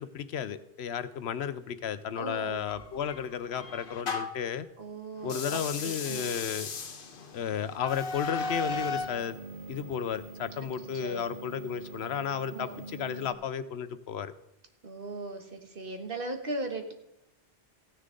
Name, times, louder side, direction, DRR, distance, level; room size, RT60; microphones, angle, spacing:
voice 1, 0.0-4.7 5.2-6.7 7.3-9.4 9.7-14.3, left 8 dB, 75° left, 13 dB, 0.9 m, -33 dB
voice 2, 2.1-2.6 4.8-6.4 10.6-10.7 10.9-11.3 12.5-12.8 14.8-16.9, right 2 dB, 55° right, 5 dB, 1.6 m, -38 dB
sound 1, 2.7-4.5 5.2-9.2, left 3 dB, 55° left, 1.1 m, -36 dB
sound 2, 8.3-13.3, right 3 dB, 35° right, 2.2 m, -45 dB
15.0 x 10.0 x 3.8 m, 0.83 s
omnidirectional pair, 1.1 m